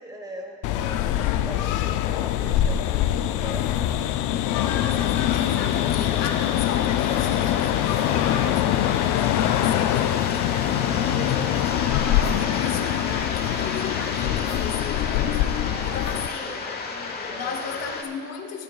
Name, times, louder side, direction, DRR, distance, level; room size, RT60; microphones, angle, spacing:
voice 1, 0.0-4.1 4.5-4.6 9.5-12.0 15.5-16.1 16.5-17.7, right 1 dB, 10° right, 2 dB, 1.3 m, -41 dB
sound 1, 0.6-16.3, left 12 dB, 80° left, 0.5 m, -24 dB
voice 2, 4.5-10.4 11.3-16.6 17.3-18.6, left 6 dB, 60° left, 3 dB, 0.9 m, -36 dB
sound 2, 4.5-18.0, left 4 dB, 30° left, 1.1 m, -33 dB
24.0 x 9.5 x 2.4 m, 2.1 s
cardioid pair, 160°, 30 cm